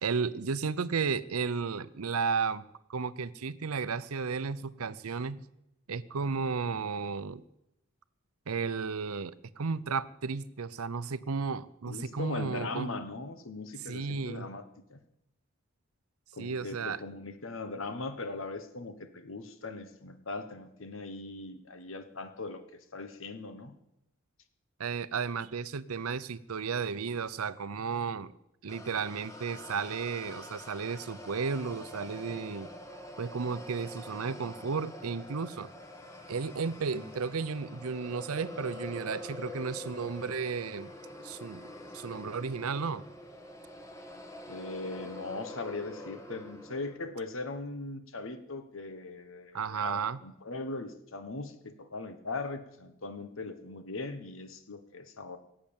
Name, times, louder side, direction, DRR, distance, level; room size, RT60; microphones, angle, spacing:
voice 1, 0.0-2.6 2.9-5.4 5.9-7.4 8.5-12.9 13.8-14.5 16.4-17.0 24.8-28.3 28.6-32.7 33.2-35.7 36.3-40.9 41.2-41.6 41.9-43.0 49.5-50.2, right 5 dB, 90° right, 16 dB, 0.7 m, -33 dB
voice 2, 11.9-14.6 14.9-15.0 16.3-23.8 36.9-37.1 44.5-55.4, left 3 dB, 65° left, 9 dB, 1.2 m, -40 dB
sound 1, 28.7-46.9, left 1 dB, 15° left, 1.6 m, -45 dB
17.5 x 7.7 x 8.7 m, 0.85 s
head